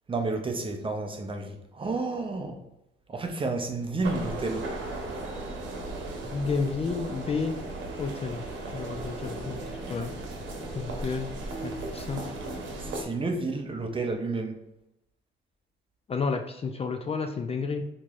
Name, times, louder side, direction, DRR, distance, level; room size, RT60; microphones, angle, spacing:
voice 1, 0.1-2.6 3.1-4.7 12.8-14.6, right 3 dB, 25° right, 4 dB, 0.6 m, -31 dB
sound 1, 4.0-13.0, right 2 dB, 75° right, 0.9 m, -36 dB
voice 2, 6.2-7.6 8.0-8.4 8.7-10.1 10.8-11.3 11.6-12.3 16.1-17.8, left 4 dB, 30° left, 4 dB, 0.3 m, -31 dB
4.5 x 2.9 x 2.4 m, 0.88 s
cardioid pair, 90°, 20 cm